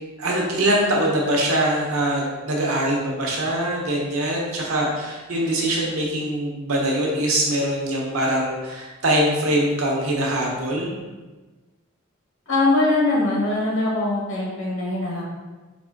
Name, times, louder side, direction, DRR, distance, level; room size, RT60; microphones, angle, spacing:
voice 1, 0.2-11.0, right 1 dB, 85° right, -2 dB, 0.8 m, -23 dB
voice 2, 12.5-15.2, left 2 dB, 70° left, -4 dB, 1.1 m, -22 dB
4.0 x 2.5 x 2.5 m, 1.2 s
head